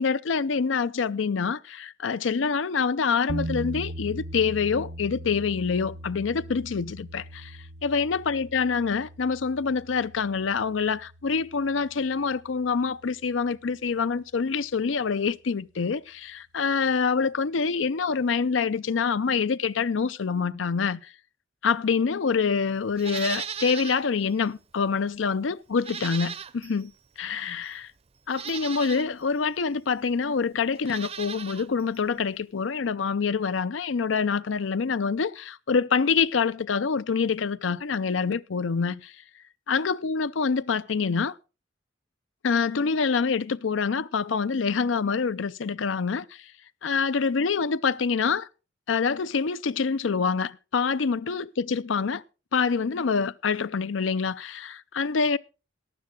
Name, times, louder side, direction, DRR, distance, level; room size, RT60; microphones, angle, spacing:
voice 1, 0.0-21.0 21.6-26.9 27.2-27.9 28.3-39.1 39.7-41.4 42.4-46.4 46.8-48.5 48.9-52.2 52.5-55.4, left 5 dB, 85° left, 0.5 m, -26 dB
sound 1, 3.3-13.3, right 1 dB, 90° right, 1.2 m, -40 dB
Livestock farm animals working animals, 23.0-24.0 24.4-24.5 25.8-26.8 27.6-27.7 28.3-29.1 30.7-31.7 31.9-32.0, right 8 dB, 35° right, 0.6 m, -36 dB
15.0 x 10.5 x 3.8 m
head